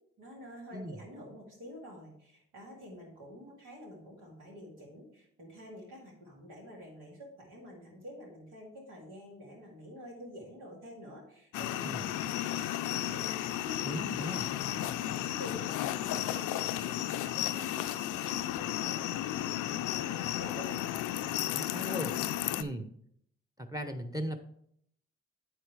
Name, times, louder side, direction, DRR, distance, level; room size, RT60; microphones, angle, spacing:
voice 1, 0.2-14.3 14.7-21.4, left 1 dB, 90° right, -2 dB, 2.3 m, -48 dB
sound 1, 11.5-22.6, left 13 dB, 80° left, 0.5 m, -33 dB
voice 2, 13.8-14.5 21.5-22.1 22.6-22.8 23.6-24.4, equal, 10° right, 8 dB, 0.9 m, -37 dB
8.6 x 4.7 x 4.7 m, 0.68 s
supercardioid pair, 50°, 30 cm